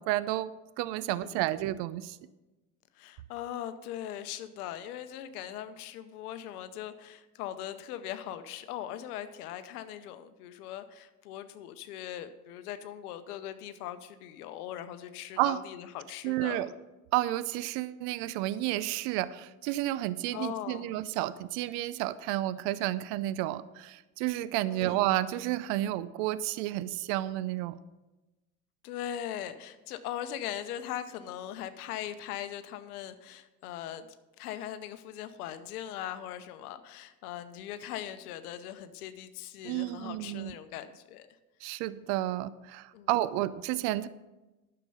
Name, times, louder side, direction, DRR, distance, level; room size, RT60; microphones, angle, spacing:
voice 1, 0.0-2.2 15.4-15.6 16.2-16.7 17.1-27.8 39.6-40.6 41.6-44.1, right 15 dB, 65° right, 17 dB, 0.6 m, -31 dB
voice 2, 1.0-1.4 3.0-16.7 20.3-20.9 24.7-25.0 28.8-34.1 34.4-41.4 42.9-43.1, left 11 dB, 80° left, 11 dB, 0.8 m, -40 dB
9.9 x 6.8 x 5.4 m, 1.1 s
hypercardioid pair, 85°, 44 cm